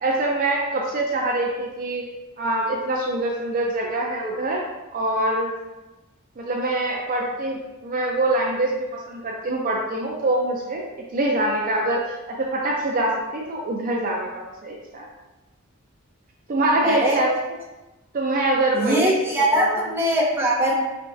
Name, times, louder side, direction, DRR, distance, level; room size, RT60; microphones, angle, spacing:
voice 1, 0.0-2.0 2.4-4.6 4.9-5.5 6.4-10.8 11.1-15.1 16.5-17.4 18.1-19.8, right 1 dB, 40° right, -2 dB, 0.5 m, -24 dB
voice 2, 16.8-17.3 18.7-20.8, equal, 10° right, -4 dB, 0.8 m, -21 dB
5.4 x 3.4 x 2.6 m, 1.1 s
head